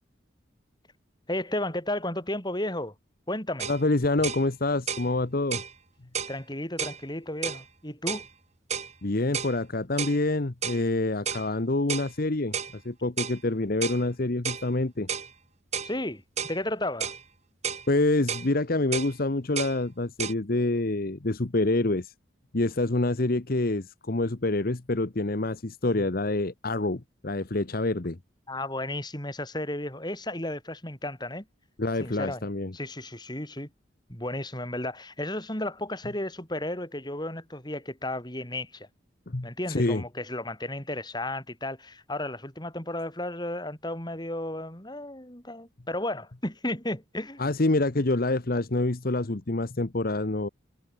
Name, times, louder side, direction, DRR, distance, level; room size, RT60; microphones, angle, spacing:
voice 1, 1.3-2.9 3.3-3.7 6.3-8.3 15.8-17.1 28.5-31.4 32.0-32.4 32.7-33.7 34.1-38.9 39.4-47.4, left 1 dB, 20° left, 6.3 m, -33 dB
sound 1, 3.6-3.8 4.2-4.4 4.9-5.1 5.5-5.7 6.1-6.4 6.8-7.0 7.4-7.6 8.1-8.3 8.7-8.9 9.3-9.6 10.0-10.2 10.6-10.8 11.3-11.5 11.9-12.1 12.5-12.7 13.2-13.4 13.8-14.0 14.4-14.7 15.1-15.3 15.7-15.9 16.4-16.6 17.0-17.2 17.6-17.9 18.3-18.5 18.9-19.1 19.6-19.8 20.2-20.3, right 7 dB, 35° right, 3.4 m, -32 dB
voice 2, 3.7-5.6 9.0-15.1 17.9-22.1 22.5-28.2 31.8-32.7 39.3-40.0 47.4-50.5, left 2 dB, 50° left, 1.0 m, -27 dB
head